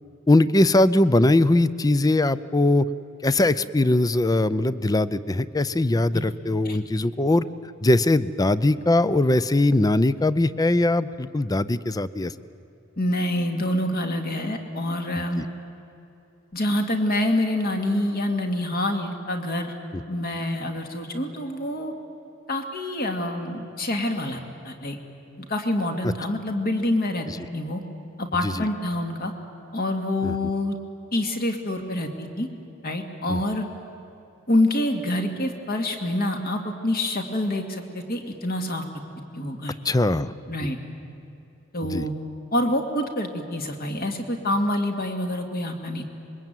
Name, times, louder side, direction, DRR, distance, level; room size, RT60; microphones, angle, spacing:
voice 1, 0.3-2.9 3.2-7.4 7.8-12.3 15.2-15.4 19.9-20.0 27.3-27.4 28.4-28.7 30.2-30.4 33.3-33.4 39.8-40.3 40.6-40.7 41.8-42.1, left 2 dB, 20° left, 16 dB, 0.5 m, -21 dB
voice 2, 13.0-15.4 16.5-19.7 20.1-21.9 22.5-25.0 25.4-27.3 27.5-27.8 28.2-29.3 29.7-30.8 31.1-32.5 32.8-33.6 34.5-38.8 39.3-39.7 40.5-40.8 41.7-42.1 42.5-46.0, left 1 dB, 50° left, 4 dB, 2.4 m, -26 dB
26.0 x 22.0 x 9.2 m, 2.9 s
head